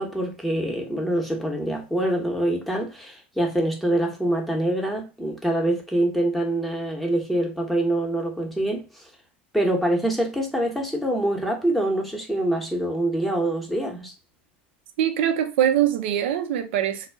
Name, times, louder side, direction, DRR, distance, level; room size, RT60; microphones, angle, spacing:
voice 1, 0.0-8.9 9.5-14.1, right 1 dB, ahead, 0.7 m, -25 dB
voice 2, 15.0-17.1, right 10 dB, 70° right, 0.5 m, -23 dB
2.2 x 2.0 x 3.2 m
hypercardioid pair, 110°, 6 cm